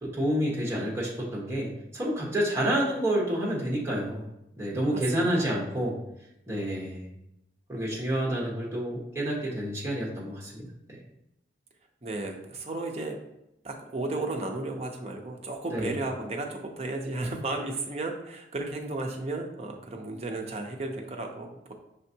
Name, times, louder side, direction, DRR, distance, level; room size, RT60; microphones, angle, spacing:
voice 1, 0.0-4.2 4.6-6.0 6.5-7.0 7.7-10.7 15.7-15.9, right 1 dB, 15° right, -4 dB, 1.1 m, -29 dB
voice 2, 4.8-5.5 12.0-13.2 13.6-21.7, right 2 dB, 35° right, 2 dB, 0.6 m, -34 dB
5.5 x 3.4 x 2.8 m, 0.84 s
head